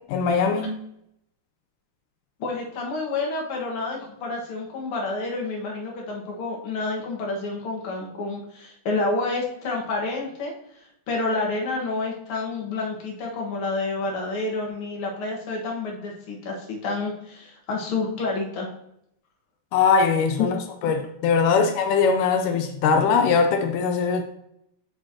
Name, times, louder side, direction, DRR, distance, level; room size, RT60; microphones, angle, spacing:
voice 1, 0.1-0.8 19.7-20.6 20.8-24.2, left 5 dB, 85° left, 2.2 m, -21 dB
voice 2, 2.4-10.5 11.1-18.7, left 3 dB, 50° left, 2.2 m, -29 dB
10.5 x 4.5 x 2.8 m
omnidirectional pair, 3.5 m